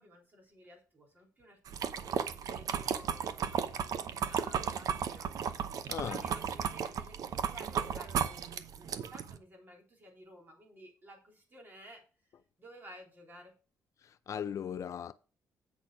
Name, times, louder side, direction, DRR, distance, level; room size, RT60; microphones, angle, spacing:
voice 1, 0.0-1.6 1.9-12.0 12.6-13.5, equal, 30° right, 3.7 m, -55 dB
sound 1, 1.7-9.4, right 7 dB, 60° right, 0.8 m, -35 dB
voice 2, 5.9-6.2 14.0-15.1, left 8 dB, 50° left, 0.5 m, -38 dB
8.4 x 5.9 x 5.0 m
cardioid pair, 120°, 7 cm